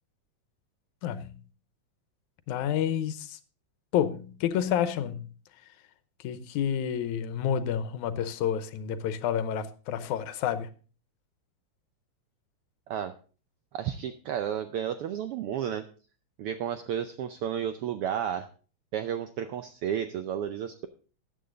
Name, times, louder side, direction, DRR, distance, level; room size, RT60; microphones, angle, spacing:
voice 1, 1.0-1.4 2.5-3.4 3.9-5.3 6.2-10.7, left 9 dB, 85° left, 2.2 m, -29 dB
voice 2, 13.7-15.8 16.4-18.5 18.9-20.9, right 9 dB, 80° right, 1.3 m, -32 dB
13.5 x 9.1 x 3.8 m
omnidirectional pair, 3.3 m